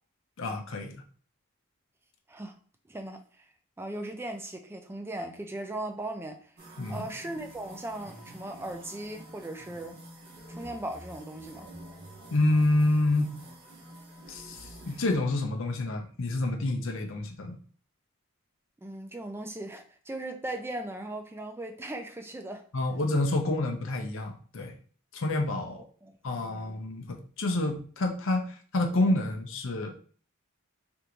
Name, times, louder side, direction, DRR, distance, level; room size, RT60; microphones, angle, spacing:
voice 1, 0.4-1.0 6.8-7.0 12.3-13.3 14.3-17.6 22.7-24.7 25.1-25.9 26.2-29.9, left 2 dB, 60° left, 0.6 m, -28 dB
voice 2, 2.9-3.5 3.8-6.5 6.9-10.0 10.5-11.7 18.8-22.6 26.0-26.7, right 1 dB, 10° right, 0.3 m, -38 dB
sound 1, 6.6-15.2, right 1 dB, 45° right, 0.9 m, -48 dB
3.5 x 2.6 x 2.9 m
head